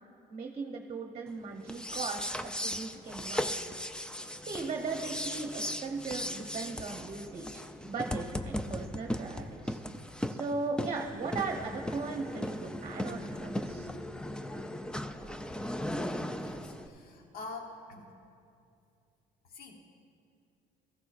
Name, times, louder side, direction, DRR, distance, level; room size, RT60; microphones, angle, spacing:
voice 1, 0.3-3.5 4.4-13.9, right 4 dB, 40° right, 2 dB, 1.0 m, -38 dB
sound 1, 1.6-16.9, left 1 dB, 5° left, 0.4 m, -37 dB
voice 2, 16.4-18.1 19.5-19.8, left 3 dB, 65° left, 2 dB, 1.2 m, -45 dB
16.0 x 14.0 x 2.5 m, 2.5 s
cardioid pair, 110°, 17 cm